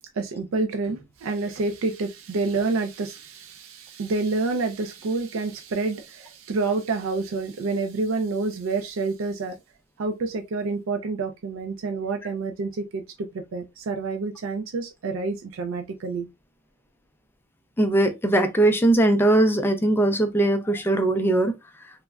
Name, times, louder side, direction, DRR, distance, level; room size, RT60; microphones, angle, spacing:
voice 1, 0.2-9.6 10.0-16.3, right 3 dB, 70° right, 0.4 m, -28 dB
voice 2, 17.8-21.5, right 1 dB, 10° left, 0.3 m, -20 dB
3.4 x 2.0 x 2.2 m
head